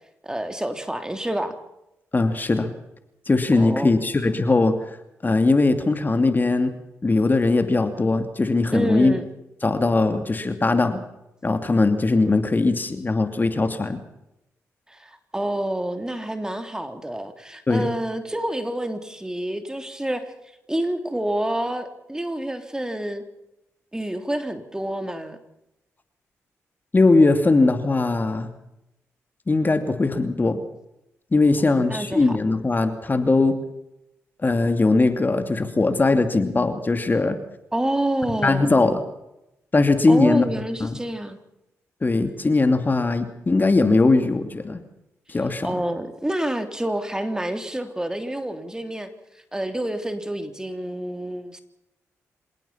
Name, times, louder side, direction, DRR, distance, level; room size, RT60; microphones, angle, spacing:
voice 1, 0.2-1.6 3.6-3.9 8.7-9.3 14.9-20.3 20.7-23.2 23.9-25.4 31.6-32.4 37.7-38.7 40.1-41.4 45.6-49.1 49.5-51.6, right 1 dB, 10° right, 7 dB, 3.4 m, -28 dB
voice 2, 2.1-2.7 3.3-5.0 5.2-6.7 7.0-9.1 9.6-11.0 11.4-14.0 17.7-17.9 26.9-28.5 29.5-30.6 31.3-33.6 34.4-37.4 38.4-39.0 39.7-41.0 42.0-44.8 45.3-45.7, left 3 dB, 35° left, 8 dB, 2.7 m, -20 dB
27.5 x 17.5 x 5.9 m, 0.88 s
cardioid pair, 60°, 6 cm